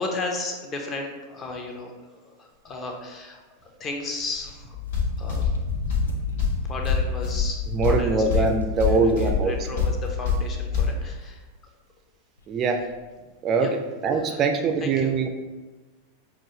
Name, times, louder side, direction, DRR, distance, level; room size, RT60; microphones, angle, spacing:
voice 1, 0.0-1.9 2.2-4.8 5.2-5.5 6.6-8.5 8.9-11.4 13.6-13.7 14.2-14.4 14.8-15.1, left 3 dB, 25° left, 2 dB, 0.7 m, -34 dB
sound 1, 4.1-10.8 11.2-11.3 12.4-12.5 12.7-13.0, left 2 dB, 75° left, 0.5 m, -38 dB
sound 2, 4.7-10.9, left 5 dB, 60° left, 1.0 m, -26 dB
voice 2, 7.7-9.5 12.5-12.8 13.4-15.3, right 4 dB, 30° right, 5 dB, 0.3 m, -23 dB
6.0 x 2.4 x 2.8 m, 1.2 s
figure-of-eight pair, 90°, 0 cm